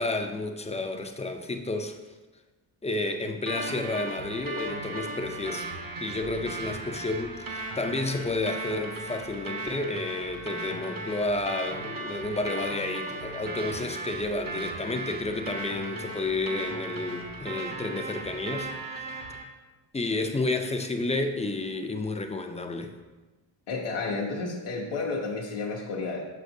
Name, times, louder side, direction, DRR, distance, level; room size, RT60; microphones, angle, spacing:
voice 1, 0.0-1.9 2.8-5.7 6.0-19.1 19.9-22.9, left 2 dB, 15° left, 5 dB, 0.5 m, -31 dB
sound 1, 3.5-19.4, right 2 dB, 45° right, 1.0 m, -37 dB
voice 2, 23.7-26.3, left 3 dB, 85° left, -3 dB, 0.9 m, -31 dB
6.7 x 5.6 x 2.7 m, 1.2 s
cardioid pair, 65°, 49 cm